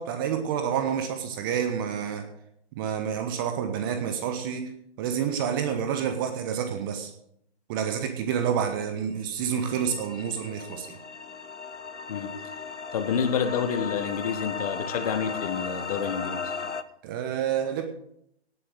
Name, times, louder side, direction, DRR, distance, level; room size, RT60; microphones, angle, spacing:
voice 1, 0.0-2.2 2.7-4.7 5.0-7.1 7.7-11.0 17.0-17.8, right 8 dB, 20° right, 7 dB, 1.1 m, -28 dB
sound 1, 9.5-16.8, left 5 dB, 90° left, 1.0 m, -36 dB
voice 2, 12.9-16.5, left 7 dB, 35° left, 8 dB, 1.5 m, -28 dB
17.5 x 7.7 x 6.5 m, 0.74 s
figure-of-eight pair, 140°, 34 cm